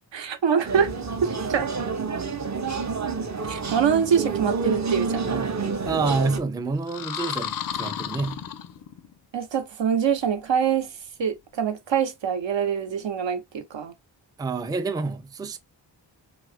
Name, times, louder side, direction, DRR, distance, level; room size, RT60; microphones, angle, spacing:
voice 1, 0.1-0.9 1.2-1.7 3.4-5.3 9.3-13.9, right 7 dB, 65° right, 0.8 m, -25 dB
sound 1, 0.6-6.4, right 4 dB, 35° right, 0.7 m, -28 dB
voice 2, 5.9-8.4 14.4-15.6, right 4 dB, 10° right, 0.4 m, -28 dB
sound 2, 6.8-9.1, left 9 dB, 50° left, 0.4 m, -33 dB
2.7 x 2.4 x 3.3 m
cardioid pair, 55°, 47 cm